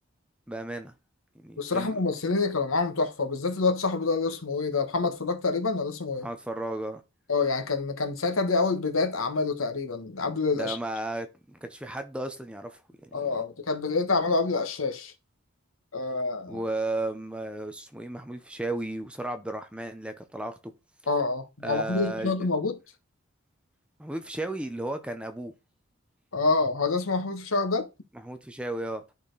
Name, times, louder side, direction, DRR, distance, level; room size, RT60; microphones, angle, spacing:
voice 1, 0.5-0.9 1.3-2.0 6.2-7.0 10.5-13.4 16.5-20.7 21.6-22.5 24.0-25.5 28.1-29.0, right 2 dB, 5° right, 0.7 m, -34 dB
voice 2, 1.6-6.3 7.3-10.8 13.1-15.1 15.9-16.6 21.1-22.8 26.3-27.9, left 3 dB, 90° left, 1.4 m, -27 dB
10.5 x 4.4 x 4.0 m
head